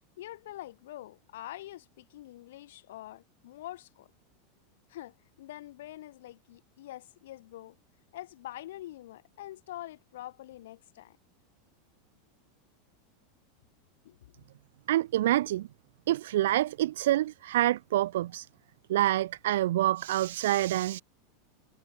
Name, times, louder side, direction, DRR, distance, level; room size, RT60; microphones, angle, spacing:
voice 1, 0.2-4.1 4.9-7.8 8.1-11.2 14.0-14.2, left 14 dB, 80° left, 3.8 m, -45 dB
voice 2, 14.9-15.7 16.1-18.5 18.9-21.0, right 14 dB, 80° right, 0.5 m, -27 dB
supercardioid pair, 165°, 0 cm